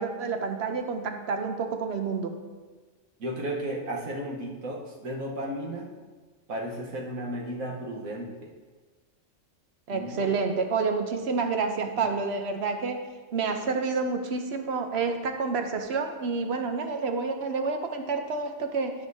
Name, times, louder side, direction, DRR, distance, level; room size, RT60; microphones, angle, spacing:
voice 1, 0.0-2.4 9.9-13.0 13.3-18.9, right 4 dB, 60° right, 5 dB, 0.8 m, -29 dB
voice 2, 3.2-5.9 6.5-8.5 9.9-10.3 12.0-12.1, right 1 dB, 85° right, -1 dB, 1.6 m, -34 dB
12.5 x 6.2 x 2.7 m, 1.4 s
omnidirectional pair, 1.4 m